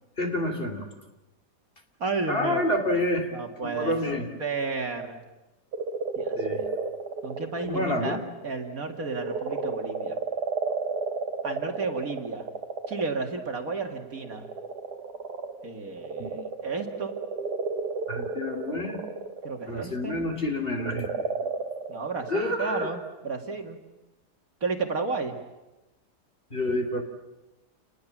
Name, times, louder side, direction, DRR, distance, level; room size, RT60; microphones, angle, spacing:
voice 1, 0.2-0.9 2.3-3.3 3.6-4.2 6.4-6.6 7.6-8.2 16.2-16.3 18.1-19.0 19.7-21.1 22.3-22.9 26.5-27.0, left 1 dB, 35° left, 3 dB, 3.3 m, -28 dB
voice 2, 2.0-2.6 3.3-4.0 4.4-5.2 6.2-6.7 7.2-8.2 8.4-10.2 11.4-12.5 12.9-14.4 15.6-17.2 19.4-20.2 21.9-23.8 24.6-25.4, right 4 dB, 55° right, 4 dB, 2.6 m, -32 dB
sound 1, 5.7-7.9 8.3-13.2 14.0-20.2 20.7-22.4, right 4 dB, 70° right, 2.1 m, -33 dB
29.0 x 20.5 x 7.4 m, 1.0 s
omnidirectional pair, 1.8 m